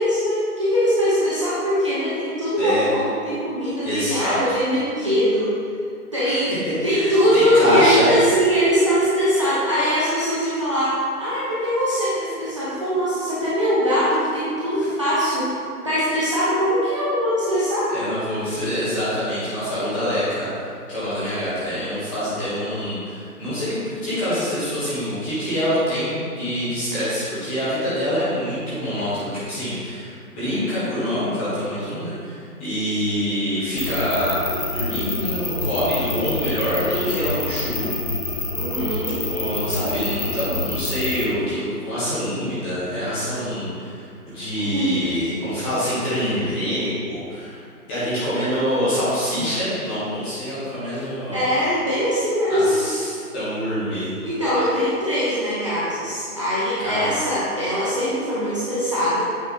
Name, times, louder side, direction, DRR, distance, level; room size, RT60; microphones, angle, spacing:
voice 1, 0.0-5.5 6.1-6.5 6.8-15.5 15.8-17.9 38.5-39.2 44.6-45.0 46.0-46.2 51.0-51.1 51.3-52.8 54.2-59.2, equal, 20° right, -11 dB, 0.7 m, -21 dB
voice 2, 3.8-4.6 6.2-6.6 6.9-8.3 17.9-37.9 39.1-47.6 47.9-51.4 52.5-54.1 56.8-57.1, equal, 10° left, -13 dB, 1.1 m, -25 dB
sound 1, 33.8-41.3, left 2 dB, 35° left, 0.6 m, -27 dB
8.2 x 4.1 x 4.3 m, 2.3 s
figure-of-eight pair, 155°, 47 cm